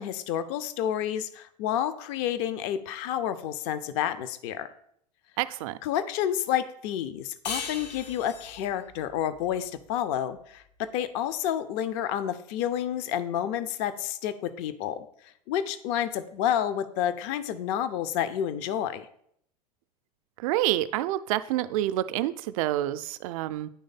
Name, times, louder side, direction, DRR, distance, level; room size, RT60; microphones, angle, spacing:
voice 1, 0.0-4.7 5.8-15.1 15.5-19.1, left 10 dB, 50° left, 12 dB, 0.5 m, -30 dB
voice 2, 5.4-5.8 20.4-23.7, right 14 dB, 55° right, 13 dB, 0.4 m, -28 dB
sound 1, 7.4-10.6, left 5 dB, 80° left, 0.9 m, -39 dB
9.5 x 3.2 x 4.0 m, 0.68 s
hypercardioid pair, 90°, 21 cm